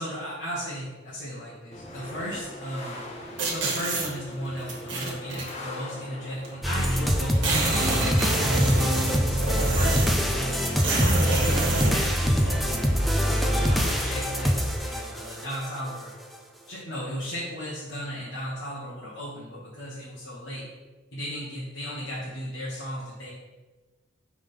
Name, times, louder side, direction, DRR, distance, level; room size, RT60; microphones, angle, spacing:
voice 1, 0.0-3.0 3.5-8.9 9.3-12.9 13.2-16.1 16.7-20.6 21.1-23.3, equal, 60° left, -9 dB, 1.4 m, -36 dB
sound 1, 1.7-14.2, left 1 dB, 35° left, 0.9 m, -41 dB
sound 2, 3.4-4.1 4.7-5.5 6.4-6.5 6.8-6.9 7.1-10.3 10.7-12.0, right 2 dB, 70° right, 1.4 m, -27 dB
sound 3, 6.6-15.7, equal, ahead, 0.4 m, -24 dB
4.9 x 3.6 x 5.6 m, 1.3 s
head